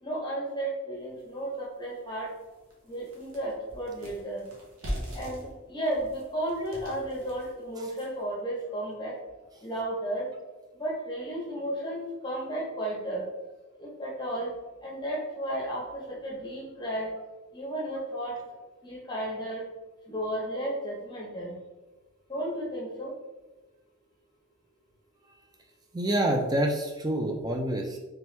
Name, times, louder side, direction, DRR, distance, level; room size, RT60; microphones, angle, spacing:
voice 1, 0.0-2.3 2.8-4.5 5.1-9.2 9.6-10.3 10.7-13.3 13.8-14.5 14.8-17.1 17.5-19.6 20.1-21.6 22.3-23.1, right 1 dB, 20° left, -4 dB, 0.9 m, -33 dB
sound 1, 1.2-1.3 1.8-1.9 2.3-8.3, equal, 70° right, 1.1 m, -41 dB
voice 2, 25.9-28.0, right 1 dB, 15° right, 2 dB, 0.4 m, -27 dB
3.4 x 3.1 x 3.1 m, 1.1 s
head